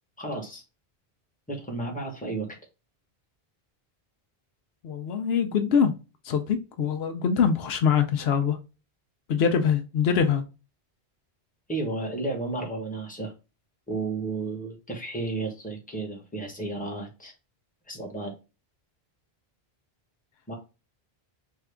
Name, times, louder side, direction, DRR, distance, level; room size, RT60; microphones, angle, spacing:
voice 1, 0.2-0.6 1.5-2.6 11.7-13.3 13.9-17.3 17.9-18.3 20.5-20.6, right 3 dB, 10° left, 1.1 m, -32 dB
voice 2, 4.8-5.9 6.2-8.6 9.3-10.4, left 7 dB, 80° left, 0.8 m, -23 dB
3.7 x 2.4 x 3.3 m
omnidirectional pair, 1.1 m